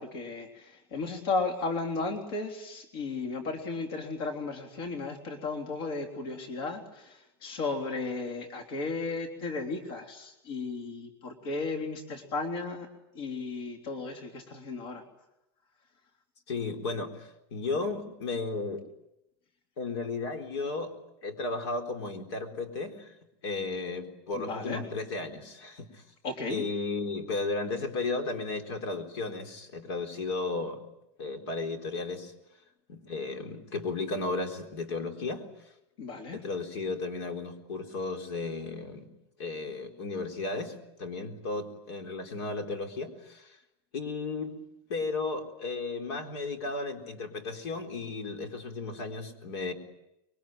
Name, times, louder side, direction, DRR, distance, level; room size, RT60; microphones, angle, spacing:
voice 1, 0.0-12.9 13.1-15.0 24.3-24.8 26.2-26.6 36.0-36.4, left 3 dB, 60° left, 4 dB, 3.6 m, -34 dB
voice 2, 16.5-18.9 19.8-20.9 21.2-23.1 23.4-26.0 26.5-30.8 31.2-32.3 32.9-35.7 36.3-39.1 39.4-43.6 43.9-44.6 44.9-49.7, left 3 dB, 80° left, 6 dB, 4.0 m, -34 dB
25.5 x 23.0 x 9.2 m, 0.86 s
supercardioid pair, 170°, 14 cm